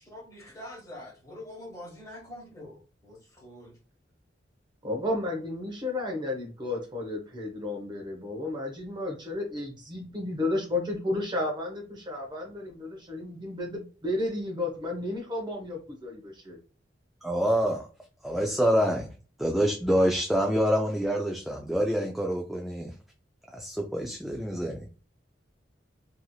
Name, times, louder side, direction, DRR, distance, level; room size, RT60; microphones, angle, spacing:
voice 1, 0.1-3.8, left 1 dB, 20° left, -3 dB, 1.6 m, -45 dB
voice 2, 4.8-16.6, left 2 dB, 25° right, 0 dB, 0.8 m, -32 dB
voice 3, 17.2-17.9 18.2-19.1 19.4-22.9 23.5-24.9, equal, ahead, 1 dB, 0.4 m, -26 dB
3.0 x 2.7 x 2.3 m, 0.36 s
head